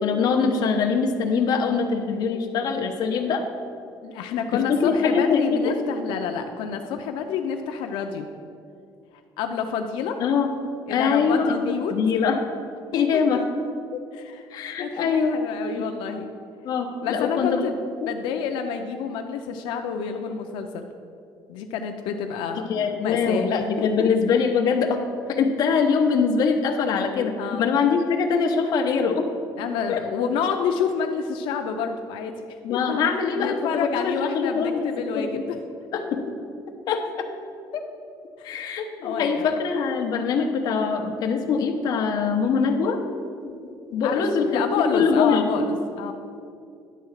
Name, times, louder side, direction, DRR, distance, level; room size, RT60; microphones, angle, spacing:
voice 1, 0.0-3.4 4.7-5.8 10.2-10.5 10.9-12.4 12.9-13.4 13.9-14.0 14.5-15.4 16.6-17.7 18.0-18.1 22.7-25.0 25.3-29.2 29.9-30.0 32.6-34.9 35.2-35.4 35.9-36.2 36.9-37.3 38.4-43.0 43.4-43.5 43.9-44.6 44.9-45.4, left 5 dB, 50° left, 3 dB, 0.8 m, -23 dB
voice 2, 4.0-8.3 9.4-10.2 10.9-12.0 12.9-13.4 14.1-14.5 14.8-16.3 17.0-20.9 21.5-23.5 23.8-24.1 27.4-27.7 29.6-33.1 33.4-35.9 38.4-39.5 44.0-44.2 44.5-46.1, left 6 dB, 90° left, 5 dB, 0.5 m, -29 dB
10.0 x 3.8 x 7.2 m, 2.5 s
cardioid pair, 160°, 8 cm